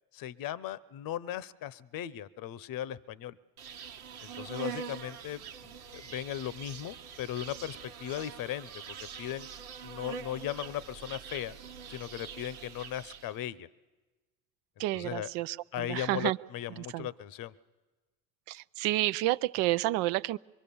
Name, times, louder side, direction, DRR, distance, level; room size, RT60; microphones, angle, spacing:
voice 1, 0.1-3.4 4.2-5.4 5.9-9.5 9.8-11.5 11.9-13.7 14.9-15.3 15.7-17.5, left 12 dB, 50° left, 17 dB, 0.9 m, -37 dB
Insect, 3.6-13.4, right 7 dB, 90° right, 1.3 m, -44 dB
voice 2, 14.8-15.6 15.9-16.4 16.8-17.1 18.5-20.4, right 17 dB, 70° right, 17 dB, 0.7 m, -30 dB
25.5 x 23.5 x 7.1 m, 1.2 s
hypercardioid pair, 70°, 43 cm